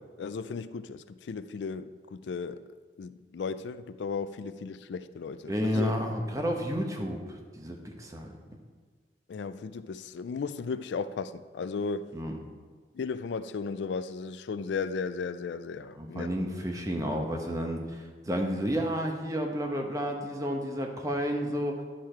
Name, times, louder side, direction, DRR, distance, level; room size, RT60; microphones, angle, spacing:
voice 1, 0.2-2.7 3.0-5.9 9.3-12.1 12.9-16.3, left 5 dB, 80° left, 13 dB, 0.4 m, -35 dB
voice 2, 5.5-7.2 7.6-8.3 12.1-12.4 16.0-21.7, equal, 20° right, 2 dB, 0.9 m, -31 dB
10.0 x 6.7 x 4.4 m, 1.5 s
head